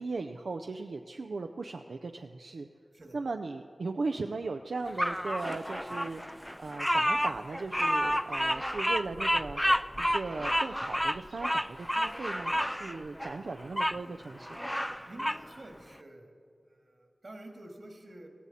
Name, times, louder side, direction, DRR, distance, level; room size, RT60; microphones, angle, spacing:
voice 1, 0.0-2.7 3.1-6.2 6.6-9.6 10.0-14.6, right 3 dB, 90° right, 5 dB, 0.4 m, -37 dB
Bird vocalization bird call bird song, 5.0-14.0 14.4-15.4, equal, ahead, 0.3 m, -30 dB
voice 2, 15.0-18.3, right 1 dB, 65° right, 3 dB, 2.1 m, -49 dB
16.5 x 15.5 x 4.2 m, 2.3 s
cardioid pair, 45°, 0 cm